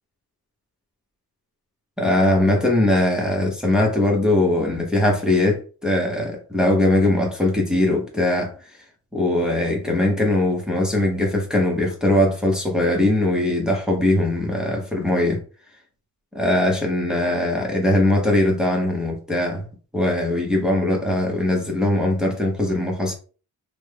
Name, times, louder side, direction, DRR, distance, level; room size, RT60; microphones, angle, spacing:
voice 1, 2.0-8.5 9.1-15.4 16.3-19.6 19.9-23.1, left 1 dB, ahead, 0.6 m, -20 dB
3.3 x 2.0 x 3.2 m
wide cardioid pair, 155°, 40 cm